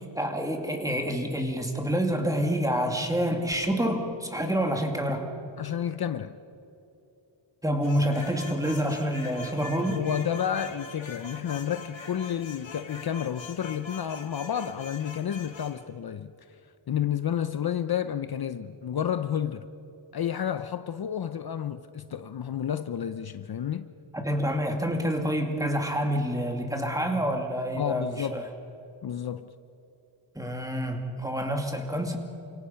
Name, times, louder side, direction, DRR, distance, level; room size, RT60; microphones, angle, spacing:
voice 1, 0.0-5.3 7.6-10.0 24.1-28.4 30.4-32.2, equal, 5° right, 2.3 m, -28 dB
voice 2, 5.6-6.4 9.9-16.3 16.9-19.6 20.1-23.9 27.8-28.4 29.0-29.5, left 9 dB, 50° left, 0.7 m, -30 dB
sound 1, 7.8-15.8, left 4 dB, 70° left, 2.4 m, -43 dB
29.0 x 25.5 x 5.8 m
wide cardioid pair, 165°, 47 cm